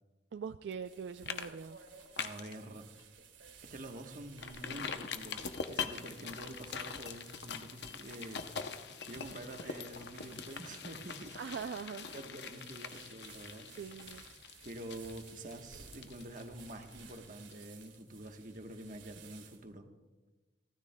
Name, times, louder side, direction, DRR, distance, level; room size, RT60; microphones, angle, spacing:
voice 1, 0.3-1.8 11.3-12.1 13.7-14.2, right 6 dB, 65° right, 10 dB, 0.3 m, -42 dB
sound 1, 0.7-0.9 1.3-1.5 1.8-2.6 3.0-3.1 3.5-3.6 4.4-18.0 18.3-18.4, left 6 dB, 60° left, 0.7 m, -43 dB
sound 2, 0.8-19.8, right 6 dB, 85° right, 1.8 m, -58 dB
voice 2, 2.2-2.9 3.6-8.5 9.0-11.4 12.1-13.7 14.6-19.9, right 1 dB, 45° right, 4 dB, 1.2 m, -47 dB
29.5 x 13.0 x 2.3 m, 1.2 s
head